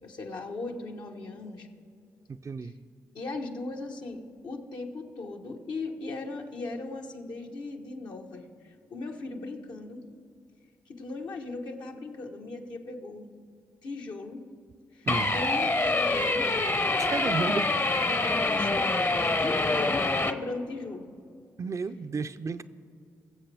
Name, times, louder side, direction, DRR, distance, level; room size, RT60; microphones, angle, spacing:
voice 1, 0.0-1.7 2.6-2.7 3.1-10.0 10.9-13.3 13.8-14.5 14.9-16.5 17.4-17.5 18.2-21.1, left 3 dB, 70° left, 1 dB, 1.3 m, -38 dB
voice 2, 2.3-2.7 15.1-15.3 17.0-17.7 21.6-22.6, right 4 dB, 45° right, 11 dB, 0.5 m, -32 dB
sound 1, 15.1-20.3, left 2 dB, 35° left, 0.8 m, -26 dB
21.0 x 7.5 x 3.5 m, 2.4 s
supercardioid pair, 45°, 8 cm